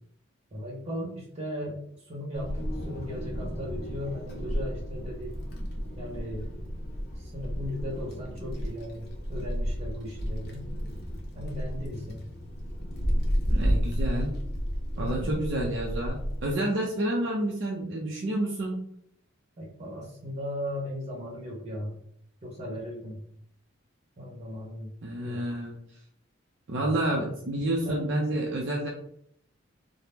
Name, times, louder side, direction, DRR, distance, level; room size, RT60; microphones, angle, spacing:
voice 1, 0.5-1.8 2.1-5.3 6.0-6.6 7.2-10.7 11.3-12.3 14.9-15.4 19.6-22.0 22.4-23.2 24.2-24.9 25.2-25.4 26.7-26.9 27.8-28.1, left 1 dB, 30° right, -4 dB, 1.0 m, -37 dB
Wind, 2.3-16.5, equal, 50° left, 0.6 m, -32 dB
voice 2, 13.5-14.4 15.0-18.8 25.0-25.8 26.7-28.9, right 1 dB, 60° right, -2 dB, 0.5 m, -29 dB
2.8 x 2.0 x 3.4 m, 0.67 s
head